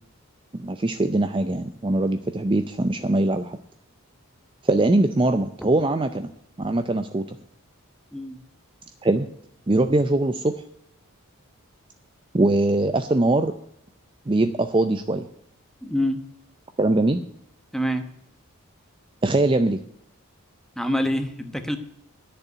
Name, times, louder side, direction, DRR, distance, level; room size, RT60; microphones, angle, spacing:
voice 1, 0.5-3.6 4.7-6.3 6.6-7.2 9.0-9.3 9.7-10.5 12.3-13.5 14.3-15.2 16.8-17.2 19.2-19.8, right 2 dB, 25° right, 8 dB, 0.5 m, -21 dB
voice 2, 15.8-16.2 17.7-18.1 20.8-21.8, equal, ahead, 8 dB, 0.9 m, -26 dB
11.0 x 6.8 x 8.1 m, 0.72 s
head